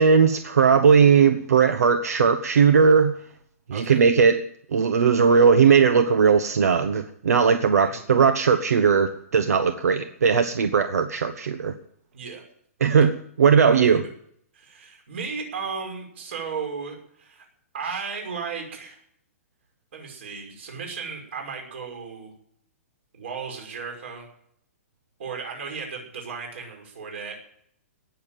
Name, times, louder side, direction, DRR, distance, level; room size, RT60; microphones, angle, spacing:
voice 1, 0.0-3.1 3.7-4.4 4.7-11.7 12.8-14.1, right 6 dB, 85° right, 9 dB, 1.2 m, -18 dB
voice 2, 3.7-4.0 7.8-8.1 12.1-12.4 14.5-17.4 17.7-19.0 19.9-22.3 23.1-24.3 25.2-27.4, right 5 dB, 50° right, 2 dB, 5.7 m, -35 dB
18.5 x 7.2 x 9.1 m, 0.67 s
hypercardioid pair, 175°, 8 cm